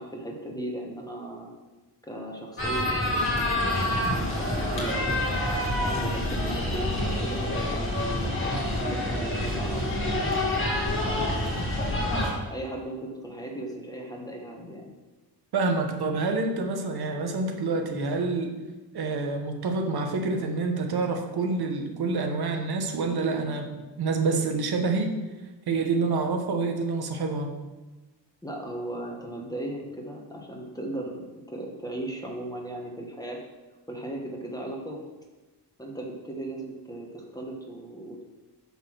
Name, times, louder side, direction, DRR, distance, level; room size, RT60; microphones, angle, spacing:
voice 1, 0.0-1.5 2.0-4.5 4.7-5.1 5.8-10.4 11.0-11.9 12.5-14.9 28.4-33.4 33.9-35.0 35.8-38.2, right 1 dB, 10° left, 0 dB, 1.1 m, -37 dB
sound 1, 2.6-12.3, left 1 dB, 30° left, 2.0 m, -27 dB
voice 2, 15.5-18.5 18.9-25.1 25.7-27.5, right 3 dB, 65° right, 4 dB, 1.1 m, -27 dB
6.6 x 5.5 x 6.1 m, 1.2 s
wide cardioid pair, 170°, 41 cm